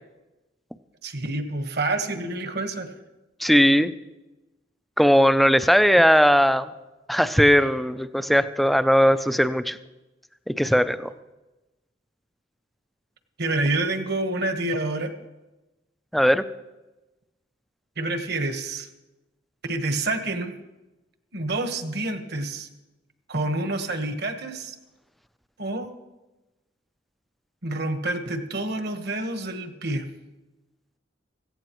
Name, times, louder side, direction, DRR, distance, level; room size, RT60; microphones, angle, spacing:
voice 1, 1.0-2.9 13.4-15.1 18.0-18.9 19.6-20.6 21.3-22.7 23.3-24.7 25.6-25.9 27.6-30.1, right 2 dB, 60° right, 7 dB, 1.3 m, -28 dB
voice 2, 3.4-3.9 5.0-6.7 7.1-9.8 10.5-11.1 16.1-16.4, equal, ahead, 12 dB, 0.4 m, -18 dB
16.5 x 15.5 x 3.1 m, 1.1 s
head